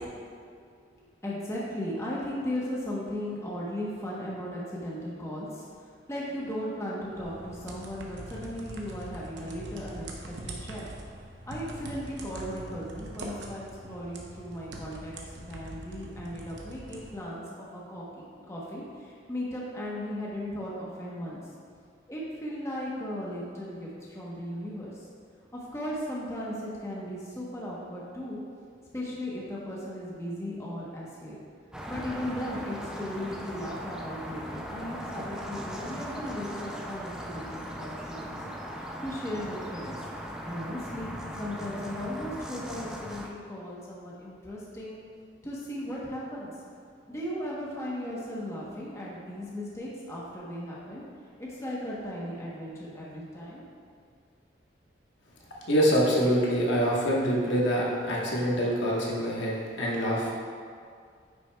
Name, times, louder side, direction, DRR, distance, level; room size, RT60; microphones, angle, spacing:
voice 1, 0.9-10.1 10.4-10.9 11.5-18.1 18.4-21.4 22.1-25.0 25.5-28.4 28.9-31.4 31.9-38.4 38.8-39.9 40.4-45.0 45.4-46.5 47.1-51.0 51.4-53.6, equal, 15° left, -6 dB, 0.9 m, -37 dB
sound 1, 7.1-17.1, right 2 dB, 75° right, 0.8 m, -43 dB
sound 2, 31.7-43.3, equal, 5° right, 0.4 m, -39 dB
voice 2, 55.7-60.3, equal, 85° left, -4 dB, 1.3 m, -25 dB
9.2 x 6.1 x 2.3 m, 2.2 s
head